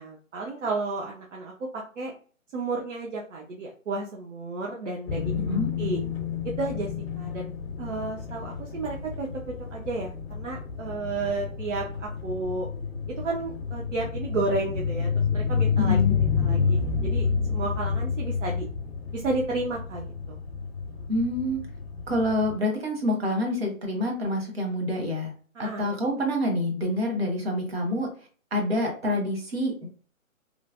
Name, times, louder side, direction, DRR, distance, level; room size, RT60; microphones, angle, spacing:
voice 1, 0.0-2.1 2.5-6.0 6.6-6.9 7.2-9.3 9.7-12.7 13.2-18.7 19.1-20.4 21.0-21.1 25.6-25.9, right 3 dB, 60° right, -1 dB, 0.6 m, -32 dB
sound 1, 5.1-22.6, left 6 dB, 50° left, 0.5 m, -29 dB
voice 2, 5.3-5.7 15.8-16.2 21.1-21.6 22.1-25.3 25.6-28.1 28.5-29.9, left 1 dB, 45° right, 1 dB, 1.0 m, -27 dB
3.1 x 2.0 x 2.4 m, 0.41 s
hypercardioid pair, 165°, 41 cm